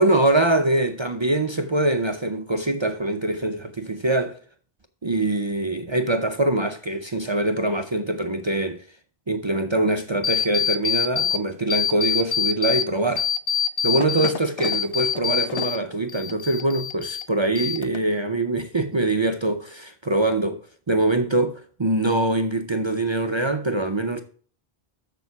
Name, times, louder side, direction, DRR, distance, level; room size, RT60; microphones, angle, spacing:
voice 1, 0.0-4.4 5.0-8.8 9.3-13.3 13.8-20.6 20.9-24.2, right 2 dB, 30° right, 0.6 m, -23 dB
sound 1, 10.2-11.4 11.7-12.8 13.2-15.8 16.1-17.2 17.6-18.2, left 8 dB, 45° left, 0.5 m, -25 dB
7.0 x 6.9 x 4.7 m
omnidirectional pair, 1.1 m